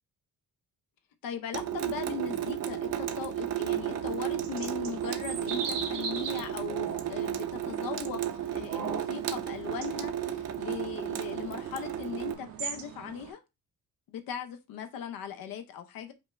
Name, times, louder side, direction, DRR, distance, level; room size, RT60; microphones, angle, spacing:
voice 1, 1.2-13.4 14.1-16.1, left 8 dB, 85° left, 0.8 m, -39 dB
Water tap faucet / Sink (filling or washing) / Drip, 1.5-12.3, right 10 dB, 50° right, 0.5 m, -33 dB
sound 1, 3.7-13.3, right 6 dB, 85° right, 1.0 m, -41 dB
5.1 x 2.6 x 3.1 m
cardioid pair, 130°, 34 cm